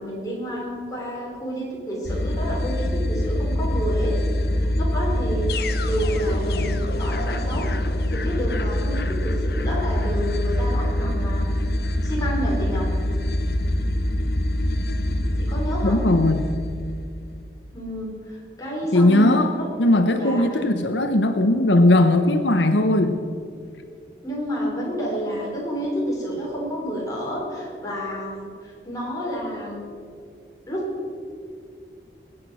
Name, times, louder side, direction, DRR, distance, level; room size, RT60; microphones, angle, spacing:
voice 1, 0.0-5.5 5.8-11.5 12.0-13.0 15.4-16.0 17.7-19.3 19.6-19.7 20.1-20.4 24.2-29.8 30.7-31.0, equal, 20° left, -4 dB, 4.5 m, -29 dB
sound 1, 2.0-17.4, left 1 dB, 60° left, 0.9 m, -24 dB
voice 2, 15.8-16.5 18.9-19.5 19.8-23.2, left 1 dB, 85° left, 7 dB, 1.0 m, -18 dB
21.0 x 9.1 x 6.3 m, 2.3 s
head